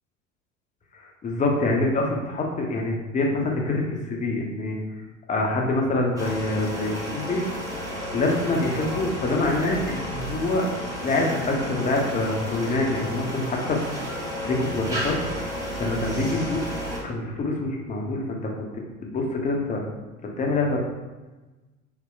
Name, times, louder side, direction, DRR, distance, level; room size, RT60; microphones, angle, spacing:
voice 1, 0.9-4.8 5.3-7.4 8.1-10.7 11.0-13.8 14.4-15.2 15.8-16.6 17.0-18.5 19.0-19.8 20.4-20.8, left 2 dB, 20° left, 0 dB, 0.5 m, -25 dB
sound 1, 6.2-17.0, equal, 10° right, 0.9 m, -32 dB
3.7 x 2.0 x 2.4 m, 1.2 s
figure-of-eight pair, 70°, 38 cm